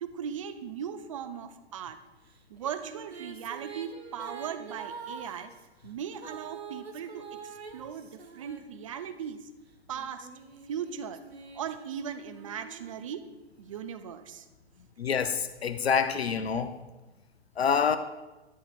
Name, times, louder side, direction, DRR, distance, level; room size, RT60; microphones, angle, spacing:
voice 1, 0.0-2.0 2.5-5.5 5.8-9.5 9.9-10.3 10.7-11.2 11.5-13.3 13.6-14.5, right 8 dB, 30° right, 10 dB, 0.4 m, -38 dB
Female singing, 2.3-9.2 9.9-13.7, right 5 dB, 70° right, 1.0 m, -46 dB
voice 2, 15.0-16.8 17.6-18.0, left 6 dB, 70° left, 11 dB, 0.6 m, -27 dB
11.0 x 10.0 x 2.3 m, 1.1 s
figure-of-eight pair, 115°, 33 cm